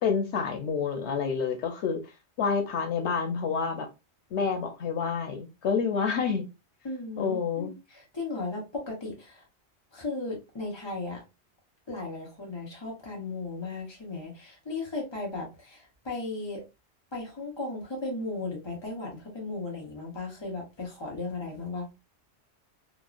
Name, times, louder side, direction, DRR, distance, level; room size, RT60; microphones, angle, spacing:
voice 1, 0.0-2.0 2.4-3.9 4.3-6.5 7.2-7.7, left 6 dB, 90° left, 1.0 m, -28 dB
voice 2, 6.8-9.4 9.9-11.2 11.9-16.6 17.1-21.9, left 3 dB, 25° left, 1.0 m, -36 dB
3.1 x 2.1 x 2.4 m
omnidirectional pair, 1.1 m